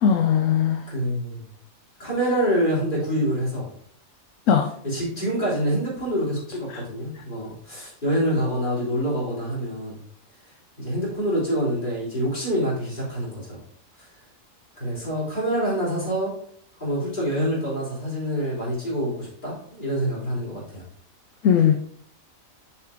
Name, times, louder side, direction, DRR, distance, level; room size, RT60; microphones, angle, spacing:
voice 1, 0.0-0.8 4.5-4.7 6.7-6.8 21.4-21.7, left 8 dB, 70° left, 7 dB, 1.0 m, -19 dB
voice 2, 0.9-1.5 2.0-3.7 4.8-10.0 10.8-13.6 14.8-16.4 16.8-20.8, equal, 35° left, -6 dB, 3.6 m, -26 dB
6.6 x 5.9 x 3.6 m, 0.63 s
omnidirectional pair, 1.4 m